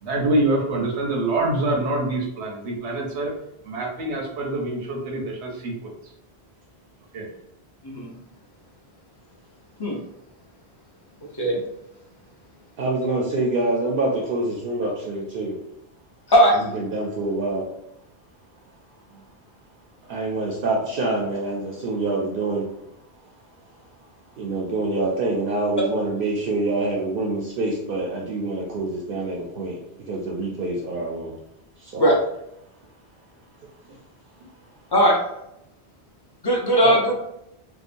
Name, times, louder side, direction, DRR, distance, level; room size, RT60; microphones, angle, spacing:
voice 1, 0.0-3.4 3.6-5.9 7.1-7.3, right 2 dB, 85° right, 0 dB, 1.0 m, -25 dB
voice 2, 12.8-15.6 16.6-17.7 20.1-22.7 24.4-31.3 31.8-32.1 36.8-37.0, right 2 dB, 60° right, -2 dB, 0.7 m, -26 dB
voice 3, 16.3-16.6 32.0-32.1 34.9-35.2 36.4-37.2, equal, 30° left, -3 dB, 0.6 m, -18 dB
2.8 x 2.3 x 2.5 m, 0.81 s
omnidirectional pair, 1.1 m